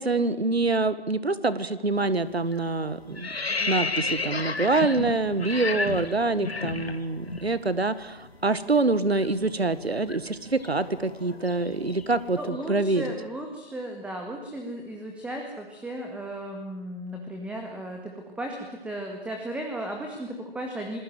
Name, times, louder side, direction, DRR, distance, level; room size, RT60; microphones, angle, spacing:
voice 1, 0.0-3.3 3.7-13.0, right 3 dB, 85° right, 15 dB, 1.8 m, -25 dB
sound 1, 1.9-2.2 2.5-7.5 7.7-7.9 8.2-12.3, left 3 dB, 80° left, 2.3 m, -32 dB
voice 2, 12.4-21.0, right 1 dB, 5° right, 2 dB, 2.0 m, -35 dB
27.5 x 20.0 x 7.8 m, 1.0 s
figure-of-eight pair, 135°, 30 cm